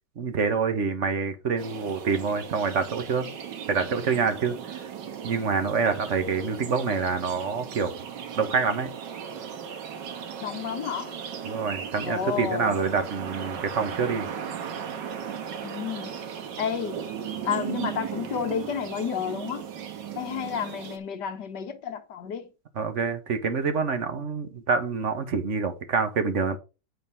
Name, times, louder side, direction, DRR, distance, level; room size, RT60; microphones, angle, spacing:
voice 1, 0.2-3.2 3.7-4.9 5.2-7.9 8.4-8.9 11.4-14.3 22.8-26.6, right 5 dB, 45° right, 1.3 m, -26 dB
sound 1, 1.6-21.0, right 8 dB, 80° right, 1.8 m, -37 dB
voice 2, 10.4-11.2 12.0-12.7 15.6-16.2 16.6-17.0 17.4-19.6 20.2-22.5, left 8 dB, 70° left, 1.6 m, -31 dB
9.2 x 4.1 x 5.5 m
omnidirectional pair, 1.9 m